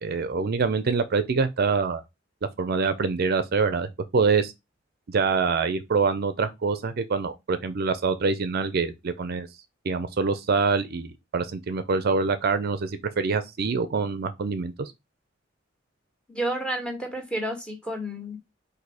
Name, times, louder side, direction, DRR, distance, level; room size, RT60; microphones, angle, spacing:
voice 1, 0.0-2.0 2.6-4.5 5.1-9.5 9.8-14.9, right 4 dB, 55° right, 0.5 m, -25 dB
voice 2, 16.3-18.5, right 1 dB, 5° left, 1.3 m, -31 dB
4.1 x 2.6 x 4.7 m
head